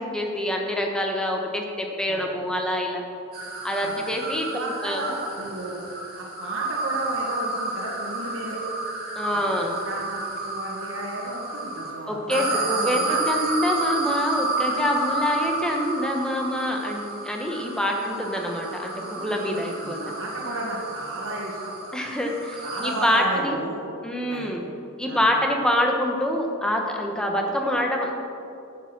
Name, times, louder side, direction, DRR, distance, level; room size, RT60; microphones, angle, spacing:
voice 1, 0.0-3.0 3.6-5.0 9.1-9.8 12.1-20.1 21.9-23.6 24.0-24.6 25.0-28.1, equal, 5° left, 1 dB, 1.0 m, -26 dB
sound 1, 3.3-11.9 12.3-23.2, right 2 dB, 45° right, 1.8 m, -31 dB
voice 2, 4.5-5.8 6.2-8.6 9.3-9.4 9.8-13.2 18.9-21.6 22.6-23.8 24.3-24.5 25.1-25.2, right 1 dB, 60° right, -2 dB, 1.6 m, -33 dB
10.5 x 7.3 x 6.0 m, 2.6 s
head